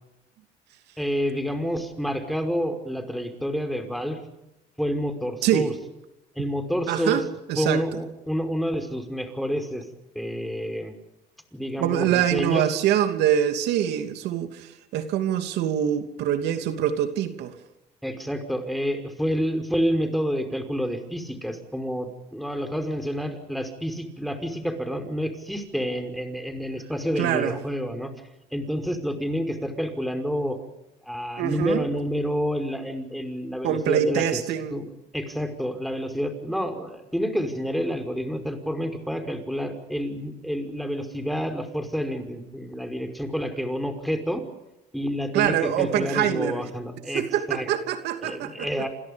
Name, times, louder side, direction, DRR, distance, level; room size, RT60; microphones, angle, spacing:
voice 1, 1.0-4.2 4.8-5.7 6.4-7.2 7.6-9.8 10.2-10.9 11.5-12.6 18.0-28.1 28.5-30.6 31.1-34.2 34.7-34.8 35.1-44.4 44.9-47.7 48.2-48.9, equal, ahead, 6 dB, 5.4 m, -28 dB
voice 2, 5.4-5.7 6.9-8.0 11.8-17.6 27.2-27.6 31.4-31.9 33.6-34.8 45.3-46.6 47.1-48.7, right 10 dB, 85° right, 7 dB, 2.9 m, -24 dB
28.5 x 27.5 x 5.4 m, 0.95 s
cardioid pair, 110°, 17 cm